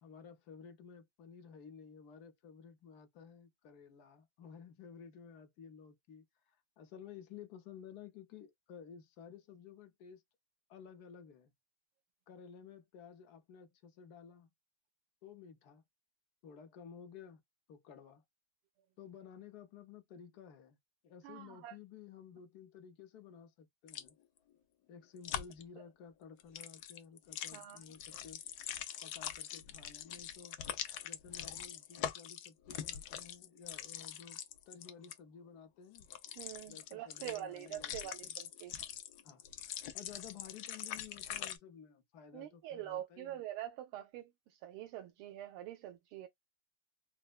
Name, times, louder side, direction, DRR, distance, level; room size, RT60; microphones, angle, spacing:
voice 1, 0.0-10.2 10.7-11.5 12.3-14.5 15.2-15.8 16.4-17.4 17.7-18.2 19.0-20.8 21.0-24.2 24.9-28.4 29.0-30.6 31.0-34.4 34.7-36.1 36.7-38.3 39.2-39.5 39.9-43.4, left 7 dB, 60° left, 1.1 m, -54 dB
voice 2, 21.2-21.8 27.5-27.8 36.4-38.7 42.3-46.3, right 13 dB, 90° right, 1.5 m, -45 dB
sound 1, 23.9-24.1 25.2-25.6 26.4-35.2 35.9-41.6, left 10 dB, 85° left, 0.8 m, -43 dB
4.3 x 2.0 x 2.3 m
omnidirectional pair, 2.3 m